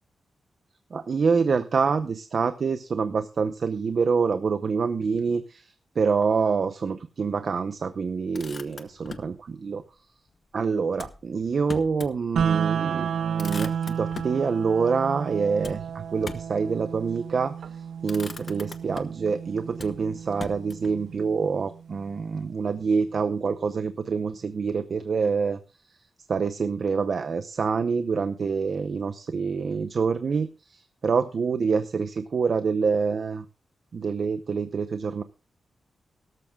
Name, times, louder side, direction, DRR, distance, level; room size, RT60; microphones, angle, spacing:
voice 1, 0.9-9.8 10.5-17.5 18.0-25.6 26.3-33.4 33.9-35.2, right 5 dB, 45° right, 11 dB, 0.7 m, -26 dB
Motor vehicle (road), 8.1-9.4 10.9-12.2 12.6-12.7 13.0-14.4 15.6-16.6 17.5-17.7 18.0-19.3 19.8-21.0, left 4 dB, 40° left, 1.0 m, -41 dB
sound 1, 12.4-22.3, right 7 dB, 90° right, 0.5 m, -32 dB
17.5 x 13.5 x 2.3 m, 0.33 s
wide cardioid pair, 175°, 0 cm